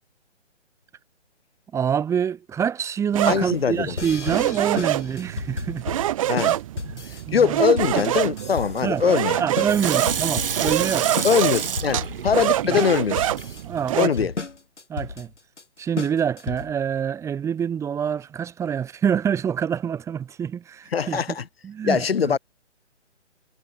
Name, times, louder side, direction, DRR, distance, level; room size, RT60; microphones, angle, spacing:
voice 1, 1.7-5.8 6.5-6.6 6.9-7.6 8.8-9.0 9.4-11.2 12.7-12.8 13.6-14.3 14.9-15.3 15.8-21.2 21.6-22.4, right 8 dB, 10° right, 2.3 m, -26 dB
sound 1, 3.1-14.1, right 13 dB, 30° right, 1.5 m, -26 dB
voice 2, 3.2-3.9 6.3-6.6 7.3-9.5 11.2-13.3 14.0-14.3 20.9-21.4 21.8-22.4, left 7 dB, 55° left, 1.2 m, -22 dB
sound 2, 4.0-16.9, left 3 dB, 75° left, 7.1 m, -33 dB
Water tap faucet / Sink (filling or washing), 9.7-13.4 13.9-14.0, right 7 dB, 50° right, 7.5 m, -29 dB
figure-of-eight pair, 145°, 36 cm